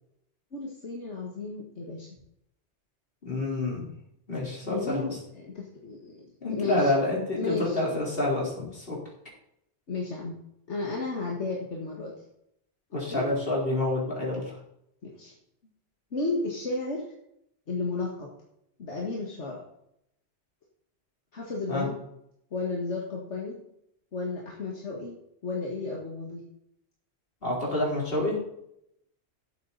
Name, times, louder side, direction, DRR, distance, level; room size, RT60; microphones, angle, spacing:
voice 1, 0.5-2.1 4.6-6.9 7.4-7.8 9.9-10.4 10.7-12.1 13.1-13.2 15.0-15.3 16.1-17.0 17.7-18.3 18.8-19.6 21.3-22.0 22.5-23.6 24.1-25.1 25.4-26.4, left 3 dB, 80° left, -2 dB, 2.1 m, -33 dB
voice 2, 3.2-3.9 4.3-5.1 6.4-9.0 12.9-14.4 21.7-21.9 27.4-28.4, left 2 dB, 55° left, -4 dB, 4.2 m, -28 dB
12.0 x 8.0 x 4.1 m, 0.77 s
omnidirectional pair, 1.2 m